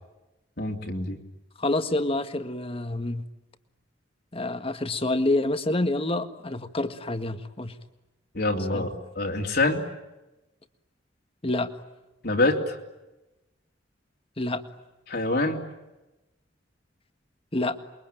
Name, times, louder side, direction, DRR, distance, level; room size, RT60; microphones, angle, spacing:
voice 1, 0.6-1.2 8.3-8.9 9.1-9.8 12.2-12.8 15.1-15.6, left 2 dB, 60° left, 2 dB, 3.1 m, -25 dB
voice 2, 1.6-3.2 4.3-7.7 8.7-8.9 11.4-11.7 14.4-14.6 17.5-17.8, left 2 dB, 30° left, 9 dB, 1.7 m, -27 dB
28.5 x 23.0 x 9.2 m, 1.0 s
head